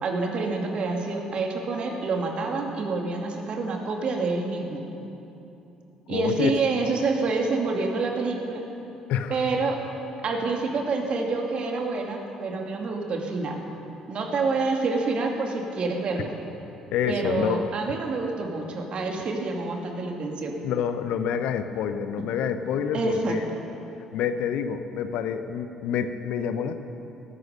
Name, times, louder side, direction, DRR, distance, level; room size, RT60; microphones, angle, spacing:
voice 1, 0.0-4.8 6.1-8.6 9.3-9.8 10.2-13.6 14.1-16.4 17.1-20.5 22.9-23.4, right 3 dB, 50° right, 2 dB, 2.5 m, -27 dB
voice 2, 6.1-6.5 9.1-9.4 16.9-17.6 20.6-23.4 24.1-26.8, left 8 dB, 65° left, 10 dB, 0.8 m, -27 dB
19.0 x 14.5 x 5.2 m, 2.8 s
hypercardioid pair, 50°, 2 cm